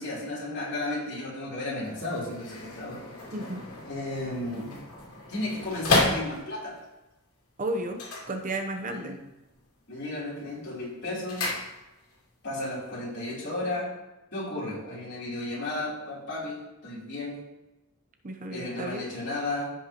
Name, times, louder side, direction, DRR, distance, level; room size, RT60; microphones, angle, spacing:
voice 1, 0.0-3.0 3.8-4.7 5.3-6.8 8.9-9.2 9.9-11.4 12.4-13.9 14.3-17.4 18.5-19.7, left 2 dB, 50° left, -7 dB, 3.5 m, -33 dB
sound 1, 1.8-6.8 7.9-9.0 9.3-9.8 10.1-12.2 12.5-12.6, left 2 dB, 90° left, 2.4 m, -32 dB
voice 2, 3.3-3.6 7.6-8.0 8.3-9.2 18.2-19.1, right 1 dB, 35° right, 5 dB, 0.7 m, -33 dB
15.5 x 5.5 x 3.0 m, 0.99 s
head